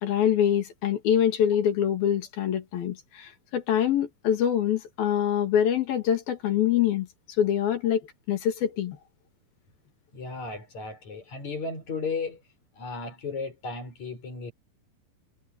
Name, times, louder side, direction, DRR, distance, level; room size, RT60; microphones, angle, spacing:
voice 1, 0.0-7.1 7.4-8.0 8.3-9.0, left 9 dB, 80° left, 4.4 m, -25 dB
voice 2, 10.1-12.4 12.7-14.5, left 4 dB, 50° left, 8.4 m, -34 dB
omnidirectional pair, 4.1 m